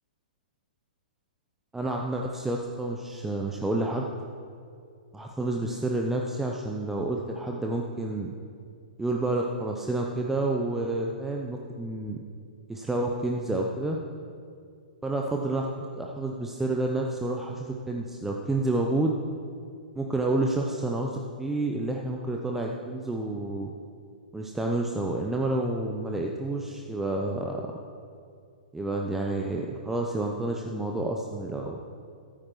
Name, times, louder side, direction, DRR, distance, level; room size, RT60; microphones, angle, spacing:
voice 1, 1.7-4.1 5.1-8.3 9.0-12.2 12.7-14.0 15.0-15.7 16.0-19.1 19.9-23.7 24.3-27.6 28.7-31.8, right 2 dB, 5° right, 0 dB, 0.8 m, -29 dB
15.0 x 14.0 x 3.2 m, 2.3 s
figure-of-eight pair, 110°, 5 cm